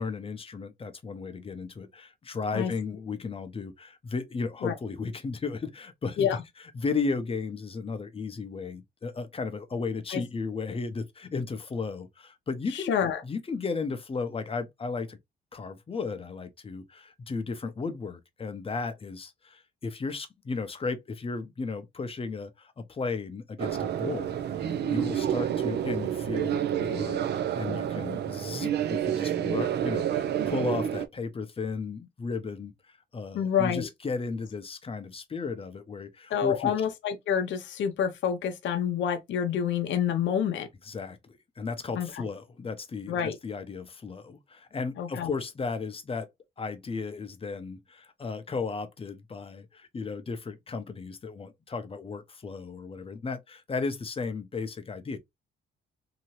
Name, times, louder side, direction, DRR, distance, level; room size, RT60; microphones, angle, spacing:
voice 1, 0.0-6.3 6.6-12.9 13.2-15.2 15.5-36.7 40.8-46.3 46.6-55.2, left 4 dB, 30° left, 0.6 m, -35 dB
voice 2, 12.7-13.2 33.3-33.9 36.3-40.7 42.0-42.1 43.1-43.4 45.0-45.3, left 8 dB, 70° left, 0.6 m, -28 dB
sound 1, 23.6-31.1, right 10 dB, 55° right, 0.4 m, -29 dB
2.9 x 2.7 x 3.0 m
cardioid pair, 90°, 20 cm